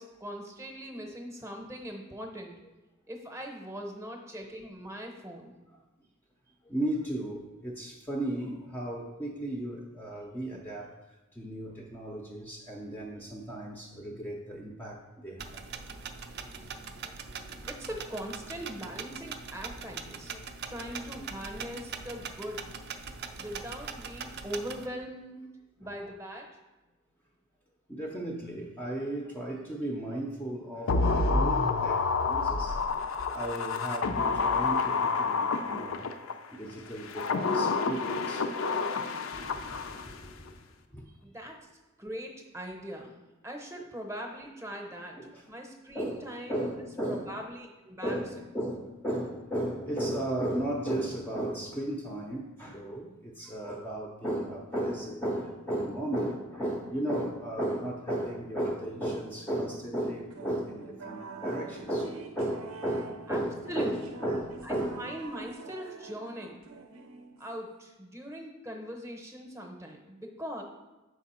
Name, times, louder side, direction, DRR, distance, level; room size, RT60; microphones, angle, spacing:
voice 1, 0.0-2.5 3.1-5.5 17.7-20.3 20.7-22.7 23.4-25.4 25.8-26.5 41.2-41.6 42.0-45.2 45.5-46.6 47.1-48.2 63.3-63.4 63.7-63.9 64.6-66.6 67.4-70.6, equal, 15° right, 2 dB, 0.8 m, -40 dB
voice 2, 6.7-10.9 11.4-15.6 17.6-17.7 20.3-20.4 25.8-26.0 27.9-32.8 33.3-36.1 36.5-38.5 39.3-40.2 40.9-41.0 45.2-45.5 45.9-47.3 48.0-65.0, right 1 dB, 10° left, -1 dB, 0.5 m, -35 dB
sound 1, 15.4-24.9, right 5 dB, 50° right, 0.4 m, -42 dB
sound 2, 30.9-36.3 37.0-40.2 40.5-40.6, left 4 dB, 70° left, 0.5 m, -28 dB
sound 3, 60.3-67.7, right 4 dB, 90° right, 0.6 m, -46 dB
6.1 x 4.6 x 4.3 m, 1.1 s
head